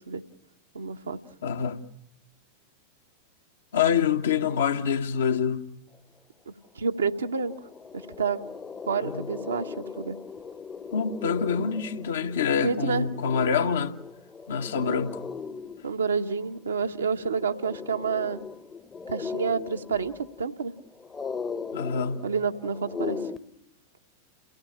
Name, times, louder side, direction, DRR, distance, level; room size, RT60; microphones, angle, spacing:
voice 1, 0.7-1.2 6.5-7.5 7.9-8.4 8.9-10.2 12.6-13.1 14.8-15.0 15.8-18.4 19.1-20.7 22.2-23.2, right 5 dB, 70° right, 1.2 m, -29 dB
voice 2, 1.4-1.8 3.7-5.7 9.0-9.3 10.9-13.9 14.5-15.2 21.7-22.3, left 7 dB, 65° left, 1.2 m, -26 dB
sound 1, 6.8-6.9 7.2-23.4, left 5 dB, 20° left, 0.9 m, -38 dB
29.0 x 16.5 x 8.6 m
figure-of-eight pair, 90°, 0 cm